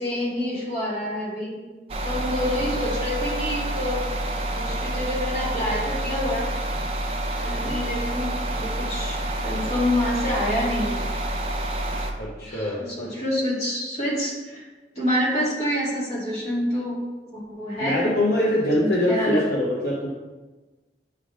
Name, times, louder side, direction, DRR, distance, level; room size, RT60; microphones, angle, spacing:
voice 1, 0.0-1.6 2.0-4.1 4.5-6.5 7.4-11.0 12.4-14.7 14.9-17.0 17.3-19.4, left 1 dB, 40° left, -6 dB, 2.0 m, -27 dB
sound 1, 1.9-12.1, right 1 dB, 35° right, 0.6 m, -28 dB
voice 2, 7.4-7.8 12.2-12.8 17.8-20.1, left 1 dB, 65° left, -4 dB, 0.8 m, -24 dB
8.8 x 3.4 x 3.7 m, 1.2 s
head